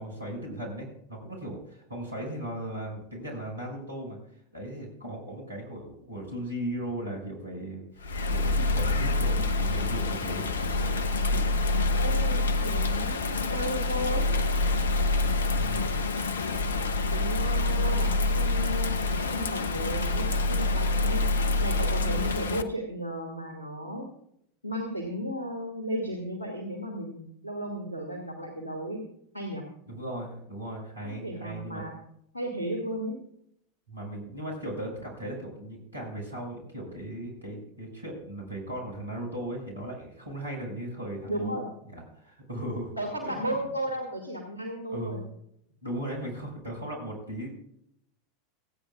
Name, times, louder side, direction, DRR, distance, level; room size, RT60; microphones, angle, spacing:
voice 1, 0.0-4.2 4.5-7.8 8.3-10.9 11.3-11.4 12.0-12.1 12.7-13.1 15.5-15.8 29.9-31.8 33.9-41.6 41.9-42.9 43.2-43.6 44.9-45.2 45.8-47.5, right 1 dB, 85° right, 0 dB, 6.1 m, -37 dB
Bird vocalization bird call bird song / Rain, 8.0-22.6, left 2 dB, 70° left, 0.9 m, -26 dB
voice 2, 12.0-14.3 17.1-21.2 21.6-24.1 24.6-29.0 29.3-29.7 31.0-31.9 32.3-33.2 41.3-41.7 43.0-45.2, equal, 90° left, 2 dB, 2.3 m, -34 dB
28.5 x 9.4 x 2.5 m, 0.73 s
figure-of-eight pair, 85°, 0 cm